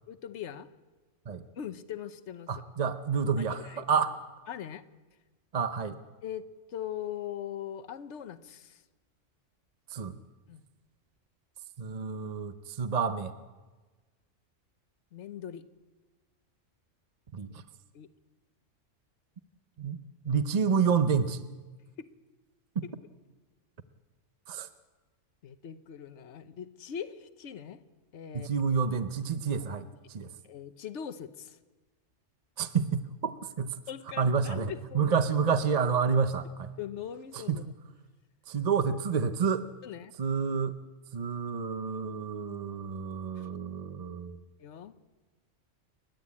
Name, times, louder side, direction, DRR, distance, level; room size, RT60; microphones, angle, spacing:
voice 1, 0.1-0.7 1.6-2.5 3.5-3.8 4.5-4.8 6.2-8.8 10.5-10.6 15.1-15.6 17.9-18.1 22.0-22.1 22.8-22.9 25.4-27.8 28.1-28.5 30.4-31.6 33.9-35.1 36.8-37.6 39.8-40.1 43.4-43.5 44.6-45.0, left 9 dB, 65° left, 11 dB, 1.2 m, -41 dB
voice 2, 2.5-4.2 5.5-6.0 9.9-10.2 11.8-13.3 17.3-17.6 19.8-20.0 20.2-21.5 22.8-22.9 24.5-24.7 28.3-30.3 32.6-33.8 34.2-36.7 37.3-37.6 38.5-39.7 40.2-40.8 41.1-44.4, right 6 dB, 40° right, 10 dB, 0.7 m, -29 dB
30.0 x 12.0 x 8.5 m, 1.3 s
omnidirectional pair, 1.3 m